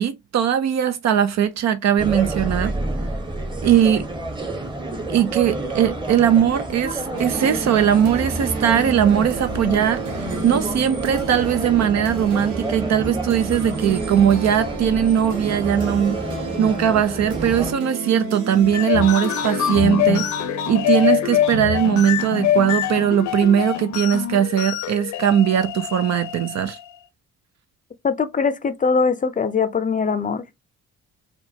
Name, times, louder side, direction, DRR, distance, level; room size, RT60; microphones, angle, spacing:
voice 1, 0.0-2.7 3.6-4.0 5.1-16.3 16.6-20.3 20.7-26.8, right 9 dB, 60° right, 0.6 m, -19 dB
sound 1, 2.0-17.7, right 2 dB, 15° right, 1.0 m, -29 dB
sound 2, 7.1-23.7, right 4 dB, 80° right, 1.1 m, -33 dB
sound 3, 18.6-26.9, left 11 dB, 75° left, 0.7 m, -24 dB
voice 2, 28.0-30.4, left 5 dB, 25° left, 0.5 m, -21 dB
4.5 x 2.3 x 2.8 m
cardioid pair, 90°, 30 cm